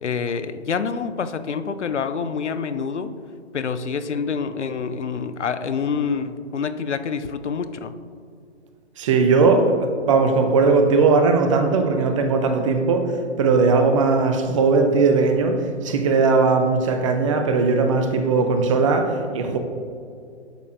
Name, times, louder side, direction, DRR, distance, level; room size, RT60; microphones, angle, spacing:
voice 1, 0.0-3.1 3.5-7.9, left 6 dB, 80° left, 11 dB, 0.6 m, -27 dB
voice 2, 9.0-13.1 13.4-19.6, right 4 dB, 30° right, 6 dB, 0.5 m, -19 dB
10.0 x 6.0 x 2.5 m, 2.4 s
figure-of-eight pair, 125°, 34 cm